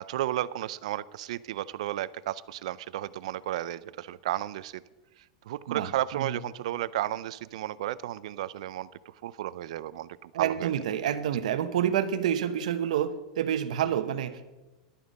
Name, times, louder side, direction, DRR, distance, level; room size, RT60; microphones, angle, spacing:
voice 1, 0.0-4.8 5.5-8.9 9.2-10.7, right 13 dB, 65° right, 19 dB, 0.4 m, -33 dB
voice 2, 5.7-6.4 10.3-14.5, right 9 dB, 85° right, 11 dB, 1.0 m, -28 dB
11.5 x 9.5 x 5.2 m, 1.1 s
supercardioid pair, 175°, 4 cm